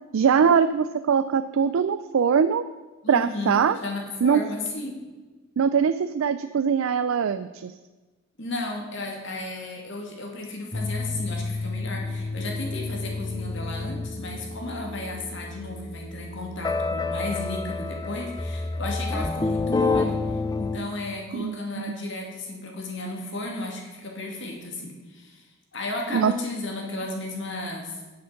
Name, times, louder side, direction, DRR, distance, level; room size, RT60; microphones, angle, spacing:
voice 1, 0.1-2.6 3.1-3.8 4.2-4.4 5.6-7.7 21.3-21.9 26.1-26.3, right 6 dB, 70° right, 12 dB, 0.4 m, -22 dB
voice 2, 3.0-4.9 8.4-25.4 25.7-27.9, left 2 dB, 55° left, 1 dB, 2.4 m, -34 dB
sound 1, 10.7-20.8, left 3 dB, 15° left, 0.4 m, -29 dB
9.6 x 8.7 x 5.8 m, 1.2 s
head